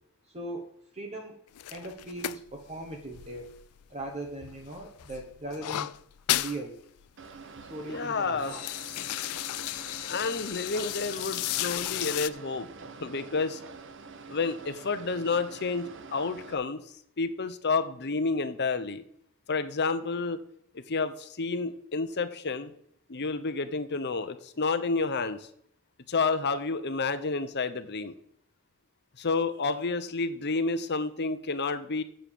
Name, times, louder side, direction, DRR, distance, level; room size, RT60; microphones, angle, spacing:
voice 1, 0.3-0.7 0.9-1.4 1.7-3.5 3.9-5.9 6.4-6.8 7.6-8.7, right 2 dB, 30° right, 1 dB, 1.3 m, -39 dB
sound 1, 1.5-4.1 4.4-6.6 7.0-7.1 7.3-7.7 8.2-12.3, left 14 dB, 90° left, 0.4 m, -34 dB
sound 2, 7.2-16.5, right 4 dB, 55° right, 1.0 m, -46 dB
voice 2, 7.9-8.6 10.0-12.7 13.0-13.6 14.3-16.8 17.2-19.0 19.5-20.4 20.7-22.7 23.1-25.5 26.1-28.1 29.2-32.0, left 4 dB, 50° left, 10 dB, 0.9 m, -30 dB
8.0 x 7.8 x 6.9 m, 0.69 s
head